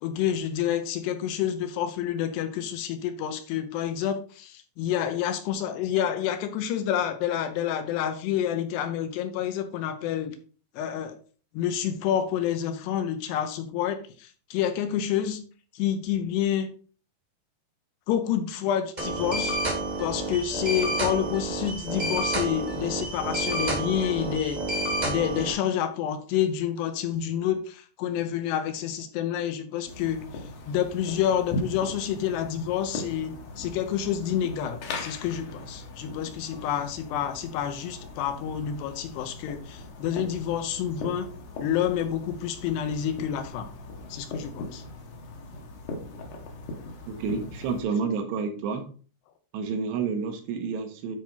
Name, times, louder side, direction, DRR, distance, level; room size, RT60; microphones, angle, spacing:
voice 1, 0.0-10.4 10.8-11.2 11.5-15.4 15.7-16.7 18.1-19.6 20.0-30.3 30.7-41.3 41.6-43.7 44.1-44.8, left 10 dB, 80° left, 7 dB, 2.9 m, -28 dB
sound 1, 19.0-25.5, right 1 dB, 25° right, 0.9 m, -29 dB
sound 2, 29.9-47.8, left 2 dB, 65° left, 2.1 m, -39 dB
voice 2, 47.1-48.9 49.5-51.2, right 5 dB, 80° right, 5 dB, 3.2 m, -29 dB
9.9 x 4.3 x 3.9 m, 0.40 s
omnidirectional pair, 5.0 m